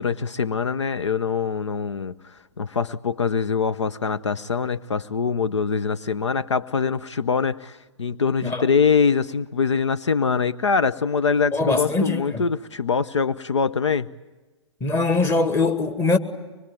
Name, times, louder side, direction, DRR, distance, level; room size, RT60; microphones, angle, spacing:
voice 1, 0.0-14.1, left 5 dB, 75° left, 0.8 m, -23 dB
voice 2, 11.5-12.5 14.8-16.2, left 3 dB, 15° left, 1.9 m, -22 dB
24.5 x 22.0 x 9.1 m
figure-of-eight pair, 115°, 15 cm